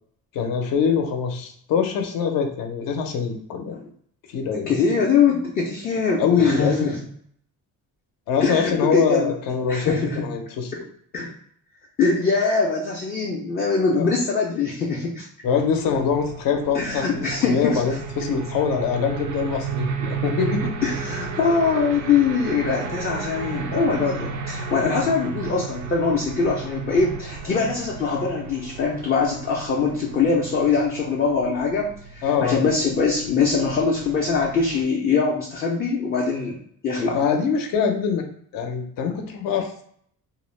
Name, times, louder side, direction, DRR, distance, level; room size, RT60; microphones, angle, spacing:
voice 1, 0.3-3.8 4.3-4.8 6.2-7.0 8.3-10.8 13.9-14.1 15.4-20.7 32.2-32.6 37.1-38.2 38.5-39.7, left 6 dB, 70° left, 4 dB, 0.6 m, -24 dB
voice 2, 4.7-7.0 8.4-9.3 9.7-10.3 11.1-11.3 12.0-15.3 16.7-17.8 20.8-36.6 36.8-37.2, left 5 dB, 30° left, -3 dB, 0.3 m, -22 dB
sound 1, 15.4-34.8, right 6 dB, 60° right, 0.4 m, -34 dB
2.4 x 2.0 x 3.0 m, 0.64 s
cardioid pair, 150°, 35 cm